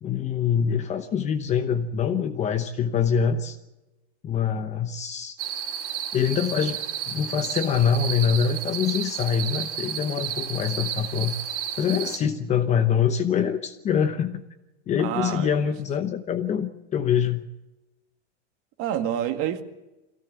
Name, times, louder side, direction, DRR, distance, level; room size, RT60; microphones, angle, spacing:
voice 1, 0.0-3.6 4.2-5.4 6.1-11.3 11.8-14.4 14.9-17.5, left 7 dB, 20° left, 9 dB, 0.9 m, -24 dB
sound 1, 5.4-12.2, right 9 dB, 75° right, 4.5 m, -32 dB
voice 2, 15.0-15.7 18.8-19.6, right 10 dB, 40° right, 7 dB, 2.0 m, -28 dB
23.0 x 16.5 x 8.2 m, 1.0 s
supercardioid pair, 155°, 36 cm